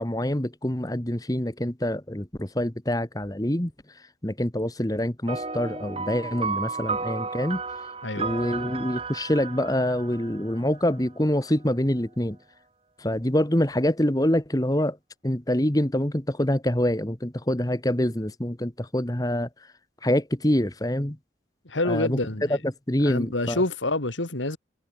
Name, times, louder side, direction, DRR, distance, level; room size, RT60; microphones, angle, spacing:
voice 1, 0.0-3.7 4.2-7.6 8.2-12.4 13.0-15.0 15.2-19.5 20.0-21.2 21.8-22.2 22.9-23.6, left 1 dB, 20° left, 1.5 m, -25 dB
sound 1, 5.3-11.0, right 4 dB, 30° right, 2.0 m, -33 dB
voice 2, 8.0-8.3 21.6-22.6 23.0-24.6, left 2 dB, 90° left, 3.1 m, -27 dB
head